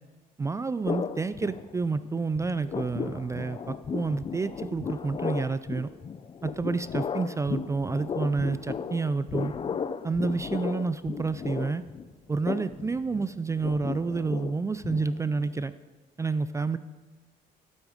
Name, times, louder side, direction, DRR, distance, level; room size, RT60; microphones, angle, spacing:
voice 1, 0.4-5.9 6.4-9.5 10.0-11.8 12.3-15.7 16.2-16.8, right 4 dB, 15° right, 14 dB, 0.4 m, -29 dB
sound 1, 0.8-2.1 2.4-15.5, left 6 dB, 30° left, 0.6 m, -35 dB
12.5 x 12.0 x 5.1 m, 1.3 s
cardioid pair, 110°, 17 cm